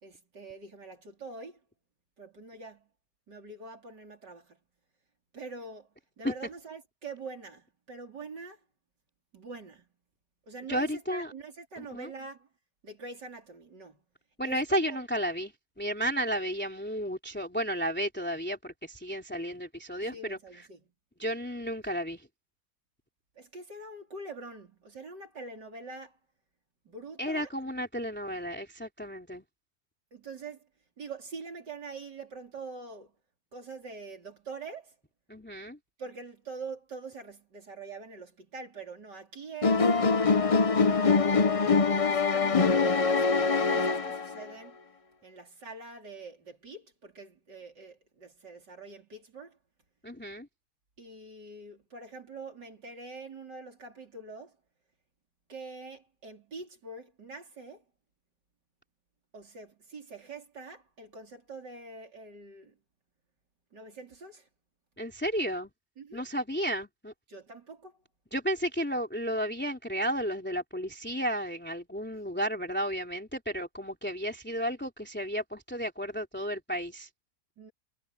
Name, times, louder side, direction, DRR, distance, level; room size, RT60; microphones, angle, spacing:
voice 1, 0.0-1.6 2.2-2.9 3.3-4.6 5.3-5.9 6.2-8.6 9.3-9.9 10.5-12.5 12.8-14.0 14.4-15.0 20.0-20.8 23.3-26.2 26.8-27.5 30.1-30.7 31.0-33.1 33.5-34.9 36.0-39.9 40.8-41.7 41.9-44.8 45.2-49.6 51.0-54.6 55.5-57.8 59.3-62.8 63.7-64.5 66.0-66.2 67.3-68.0 77.6-77.7, right 3 dB, 85° right, 4.7 m, -44 dB
voice 2, 10.7-11.3 11.8-12.1 14.4-15.5 15.8-20.4 21.2-22.2 27.2-29.4 35.3-35.8 50.0-50.5 65.0-65.7 66.1-67.1 68.3-77.1, equal, 5° left, 3.1 m, -33 dB
sound 1, 39.6-44.5, left 4 dB, 40° left, 0.4 m, -24 dB
omnidirectional pair, 1.8 m